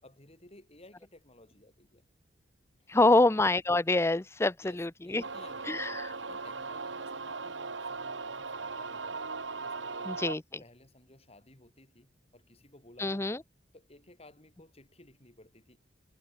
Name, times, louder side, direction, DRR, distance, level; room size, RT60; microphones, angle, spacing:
voice 1, 0.0-2.0 2.8-3.1 4.6-5.9 6.3-9.3 9.6-10.3 10.6-13.4 13.7-15.8, left 1 dB, 35° left, 4.9 m, -57 dB
voice 2, 2.9-5.2 5.7-6.1 10.1-10.4 13.0-13.4, left 2 dB, 15° left, 0.5 m, -26 dB
sound 1, 5.2-10.4, right 4 dB, 75° right, 2.0 m, -38 dB
head